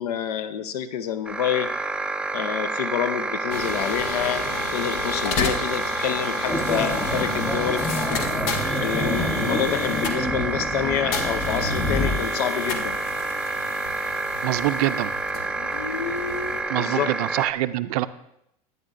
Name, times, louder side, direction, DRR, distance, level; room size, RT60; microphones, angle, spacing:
voice 1, 0.0-1.7 2.3-7.9 8.8-13.0 16.8-17.1, left 9 dB, 90° left, 12 dB, 0.6 m, -27 dB
sound 1, 1.3-17.5, right 3 dB, 5° right, 0.3 m, -29 dB
sound 2, 3.5-16.6, left 4 dB, 70° left, 1.2 m, -32 dB
sound 3, 6.5-12.2, left 1 dB, 25° left, 1.3 m, -28 dB
voice 2, 14.4-15.1 16.7-18.1, right 16 dB, 75° right, 13 dB, 0.4 m, -25 dB
12.0 x 9.2 x 2.5 m, 0.79 s
supercardioid pair, 110°, 20 cm